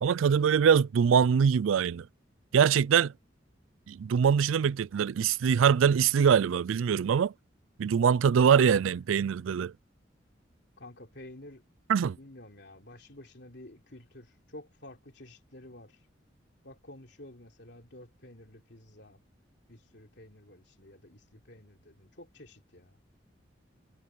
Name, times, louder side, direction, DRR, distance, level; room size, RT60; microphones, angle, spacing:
voice 1, 0.0-2.1 2.5-3.1 3.9-7.3 7.8-9.7 11.9-12.2, right 7 dB, 85° right, 0.4 m, -23 dB
voice 2, 10.8-11.6 12.2-16.0 16.6-19.2 19.7-23.0, left 1 dB, 60° left, 3.6 m, -50 dB
head